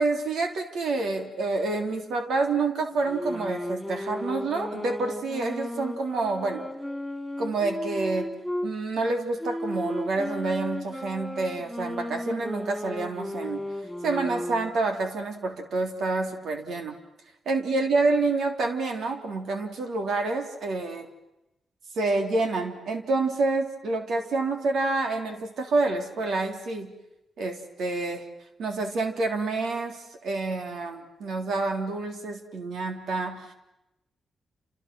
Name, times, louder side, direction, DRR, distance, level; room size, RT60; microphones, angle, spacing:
voice 1, 0.0-6.7 7.4-8.4 8.6-13.6 14.0-17.0 17.5-21.1 22.0-26.9 27.4-28.2 28.6-33.5, right 3 dB, 80° right, 4 dB, 3.5 m, -28 dB
sound 1, 3.0-8.7 9.4-14.8, left 1 dB, 5° left, 3.3 m, -34 dB
30.0 x 28.0 x 6.3 m, 0.92 s
cardioid pair, 75°, 0 cm